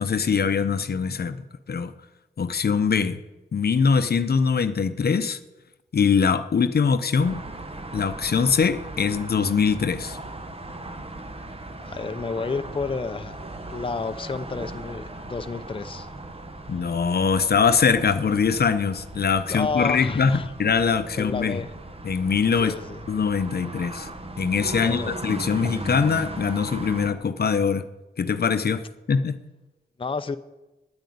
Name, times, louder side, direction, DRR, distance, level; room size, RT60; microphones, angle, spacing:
voice 1, 0.0-1.4 1.7-1.9 2.4-3.2 3.5-5.4 5.9-7.4 7.9-10.2 16.7-21.6 22.0-22.7 23.1-24.1 24.4-27.9 28.2-28.8 29.1-29.4, left 6 dB, 60° left, 11 dB, 0.7 m, -22 dB
sound 1, 7.2-27.1, right 2 dB, 35° right, 1.3 m, -38 dB
voice 2, 11.9-13.4 13.7-16.1 19.5-20.5 21.2-21.7 22.6-23.0 24.7-25.1 30.0-30.4, left 4 dB, 30° left, 8 dB, 0.6 m, -30 dB
9.7 x 9.1 x 9.4 m, 1.1 s
cardioid pair, 70°, 18 cm